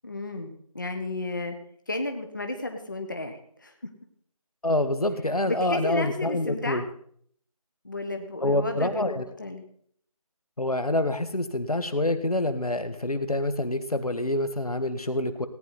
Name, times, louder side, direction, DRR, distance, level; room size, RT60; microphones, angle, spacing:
voice 1, 0.0-1.6 1.9-3.9 5.4-6.9 7.8-9.6, left 2 dB, 35° left, 5 dB, 1.1 m, -33 dB
voice 2, 4.6-6.8 8.4-9.2 10.6-15.5, left 1 dB, 80° left, 10 dB, 1.7 m, -26 dB
17.5 x 9.8 x 4.2 m, 0.63 s
figure-of-eight pair, 170°, 19 cm